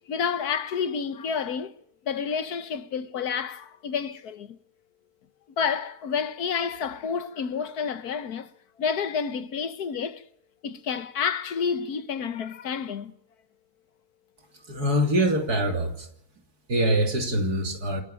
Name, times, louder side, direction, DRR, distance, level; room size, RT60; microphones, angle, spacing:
voice 1, 0.1-1.7 2.0-4.6 5.6-8.5 8.8-10.2 10.6-13.1, left 6 dB, 80° left, 1.7 m, -29 dB
voice 2, 14.7-16.1 16.7-18.0, right 1 dB, 85° right, 3.5 m, -24 dB
27.5 x 12.0 x 9.0 m
omnidirectional pair, 1.6 m